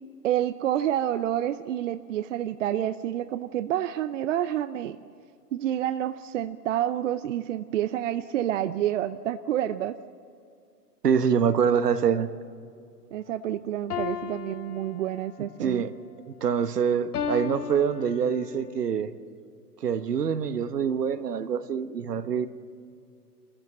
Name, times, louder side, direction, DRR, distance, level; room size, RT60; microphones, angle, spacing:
voice 1, 0.2-5.0 5.5-10.0 13.1-15.8, right 11 dB, 50° right, 13 dB, 0.7 m, -28 dB
voice 2, 11.0-12.3 15.6-15.9 16.3-19.1 19.8-22.5, right 7 dB, 75° right, 12 dB, 1.4 m, -25 dB
sound 1, 13.9-15.5 17.1-18.6, left 8 dB, 65° left, 1.3 m, -34 dB
26.5 x 15.0 x 7.5 m, 2.4 s
hypercardioid pair, 120°, 48 cm